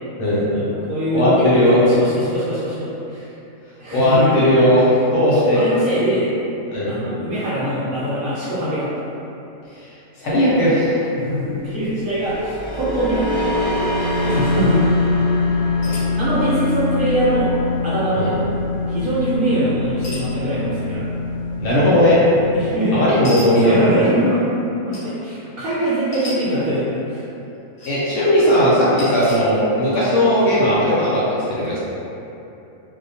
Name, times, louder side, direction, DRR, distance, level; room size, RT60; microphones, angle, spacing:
voice 1, 0.5-3.3 3.8-4.7 5.5-6.3 6.9-8.9 11.2-13.5 14.2-14.8 15.8-17.5 17.8-18.4 18.9-21.1 22.5-23.0 23.6-24.4 24.8-27.2 28.9-29.0, right 1 dB, 70° right, -10 dB, 0.9 m, -23 dB
voice 2, 1.1-1.8 3.9-5.6 6.7-7.0 10.2-11.0 18.2-18.3 21.6-22.2 22.9-23.8 27.9-31.2 31.5-31.8, equal, 70° left, -9 dB, 0.9 m, -16 dB
sound 1, 11.9-22.6, left 2 dB, 30° right, 0.8 m, -23 dB
sound 2, 15.8-16.1 17.2-17.3 17.6-17.9 20.0-20.4 21.7-21.8 23.2-23.5 24.9-25.0 26.1-26.4 27.4-27.9 29.0-29.4, left 1 dB, 45° left, 0.8 m, -34 dB
2.3 x 2.1 x 2.6 m, 2.9 s
omnidirectional pair, 1.5 m